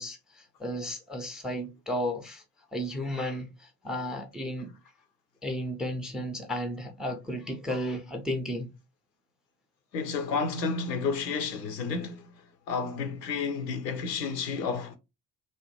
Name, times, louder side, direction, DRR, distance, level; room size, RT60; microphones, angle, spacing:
voice 1, 0.0-2.4 2.7-4.7 5.4-8.7, equal, ahead, 0.4 m, -33 dB
voice 2, 9.9-12.3 12.7-15.0, left 5 dB, 85° left, 0.6 m, -31 dB
2.6 x 2.1 x 3.0 m
figure-of-eight pair, 50°, 49 cm